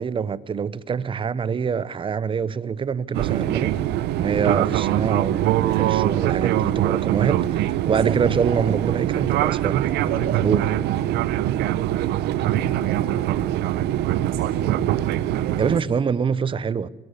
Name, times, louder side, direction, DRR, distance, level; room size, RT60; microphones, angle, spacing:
voice 1, 0.0-3.8 4.2-9.9 10.4-10.6 15.6-16.9, right 6 dB, 30° right, 0.7 m, -25 dB
Fixed-wing aircraft airplane, 3.1-15.8, right 13 dB, 80° right, 0.8 m, -23 dB
voice 2, 7.8-9.1 9.9-11.4 12.1-13.9 14.3-14.9 15.3-16.1, right 4 dB, 65° right, 7.3 m, -35 dB
23.5 x 17.5 x 8.4 m
cardioid pair, 110°, 17 cm